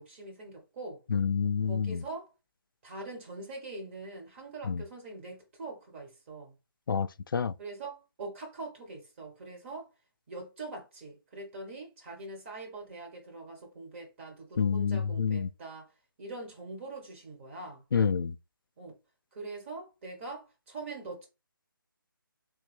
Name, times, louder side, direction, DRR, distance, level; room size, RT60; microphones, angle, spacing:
voice 1, 0.0-1.0 1.7-2.3 2.8-6.5 7.6-9.9 10.3-15.9 16.2-17.8 18.8-19.0 19.3-21.3, right 3 dB, 35° right, 1.2 m, -43 dB
voice 2, 1.1-2.0 4.6-4.8 6.9-7.5 14.6-15.5 17.9-18.4, left 6 dB, 70° left, 0.4 m, -28 dB
3.4 x 2.7 x 3.3 m
figure-of-eight pair, 150°, 12 cm